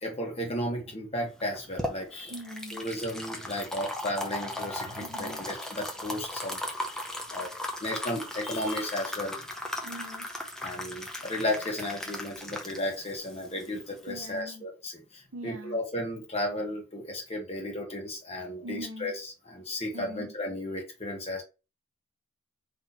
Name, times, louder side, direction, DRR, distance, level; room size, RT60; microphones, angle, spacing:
voice 1, 0.0-2.4 2.7-6.6 7.0-7.5 7.8-9.4 10.6-21.4, left 1 dB, 30° left, 1.3 m, -34 dB
sound 1, 1.4-14.4, left 1 dB, 5° left, 0.6 m, -37 dB
voice 2, 2.3-2.8 5.0-5.4 9.8-10.3 14.1-14.6 15.3-15.8 18.6-19.1 19.9-20.3, right 1 dB, 70° right, 0.9 m, -42 dB
4.0 x 3.0 x 4.2 m
head